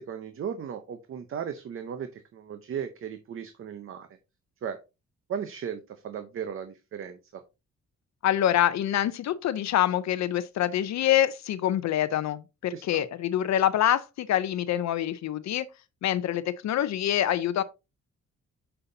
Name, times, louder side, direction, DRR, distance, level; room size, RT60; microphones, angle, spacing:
voice 1, 0.0-4.1 4.6-4.8 5.3-7.4 12.7-13.0, right 8 dB, 45° right, 0.7 m, -36 dB
voice 2, 8.2-15.7 16.0-17.6, left 11 dB, 65° left, 0.6 m, -26 dB
7.8 x 5.7 x 2.7 m
wide cardioid pair, 170°, 30 cm